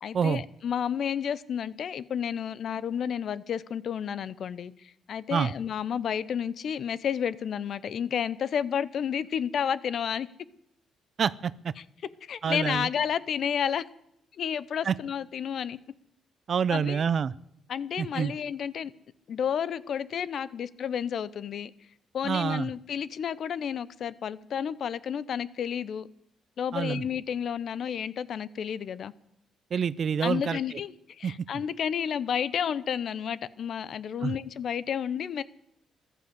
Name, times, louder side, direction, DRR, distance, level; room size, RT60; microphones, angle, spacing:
voice 1, 0.0-10.3 12.3-13.8 14.4-15.8 16.7-17.0 17.7-18.9 19.3-21.7 22.1-26.1 26.6-29.1 30.2-35.4, left 8 dB, 60° left, 18 dB, 0.7 m, -31 dB
voice 2, 11.2-11.7 12.4-12.9 14.8-14.9 16.5-17.3 18.0-18.3 22.2-22.7 26.7-27.0 29.7-30.6 31.2-31.3 34.2-34.3, right 7 dB, 50° right, 19 dB, 0.5 m, -27 dB
15.0 x 12.0 x 8.0 m, 0.75 s
cardioid pair, 90°, 0 cm